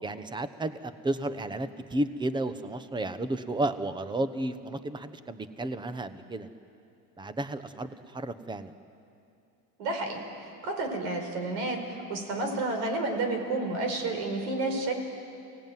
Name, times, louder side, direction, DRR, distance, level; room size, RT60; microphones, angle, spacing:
voice 1, 0.0-6.5 7.2-8.7, right 1 dB, 10° right, 11 dB, 1.0 m, -32 dB
voice 2, 9.8-14.9, right 2 dB, 70° right, 4 dB, 5.3 m, -31 dB
29.0 x 18.5 x 9.3 m, 2.6 s
supercardioid pair, 135°, 44 cm